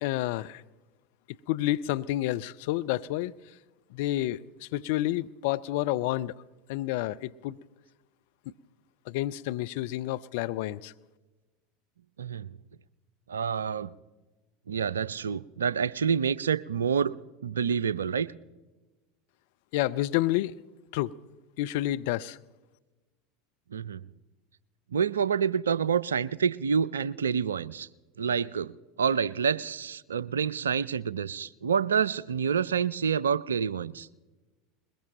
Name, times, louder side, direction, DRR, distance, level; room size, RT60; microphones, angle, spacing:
voice 1, 0.0-0.6 1.5-3.3 3.9-6.3 6.7-7.6 9.1-10.9 19.7-20.5 20.9-21.1 21.6-22.4, left 15 dB, 60° left, 0.5 m, -29 dB
voice 2, 13.3-13.9 14.7-17.1 17.4-18.3 23.7-24.0 24.9-27.9 28.2-34.1, right 7 dB, 75° right, 0.4 m, -28 dB
21.5 x 21.0 x 2.9 m
figure-of-eight pair, 80°, 0 cm